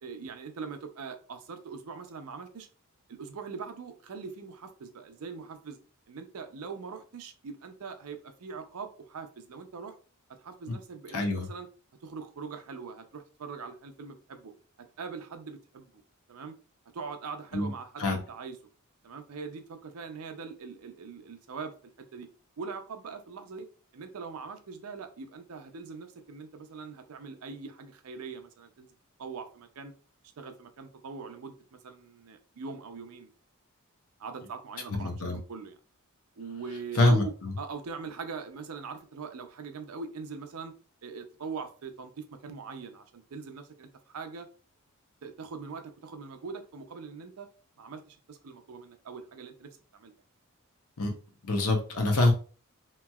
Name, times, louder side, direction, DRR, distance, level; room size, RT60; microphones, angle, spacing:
voice 1, 0.0-2.7 3.1-5.8 6.1-10.0 10.3-11.7 12.0-14.5 14.8-15.9 16.3-16.5 16.9-18.6 19.0-22.3 22.6-23.7 23.9-28.9 29.2-29.9 30.4-33.3 34.2-35.8 36.4-40.7 41.0-44.5 45.2-47.5 47.8-50.1, right 5 dB, 85° right, 7 dB, 0.5 m, -42 dB
voice 2, 11.1-11.5 17.5-17.7 18.0-18.2 35.0-35.4 37.0-37.2 51.0-51.1 51.5-52.3, left 2 dB, 80° left, 3 dB, 0.8 m, -24 dB
3.0 x 2.8 x 2.3 m, 0.38 s
head